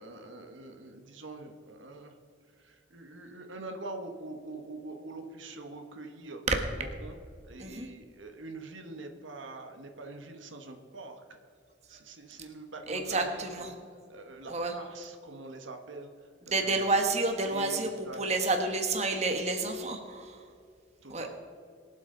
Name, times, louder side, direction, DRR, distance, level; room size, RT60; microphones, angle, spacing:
voice 1, 0.0-2.1 2.6-6.5 6.8-7.1 7.4-11.2 11.9-13.7 14.1-16.3 16.6-16.9 17.5-18.2 21.0-21.3, right 2 dB, 85° right, 5 dB, 1.3 m, -44 dB
voice 2, 12.9-13.7 14.5-14.7 16.5-20.4 21.1-21.3, right 3 dB, 35° right, 4 dB, 1.3 m, -29 dB
23.0 x 8.1 x 3.9 m, 2.3 s
head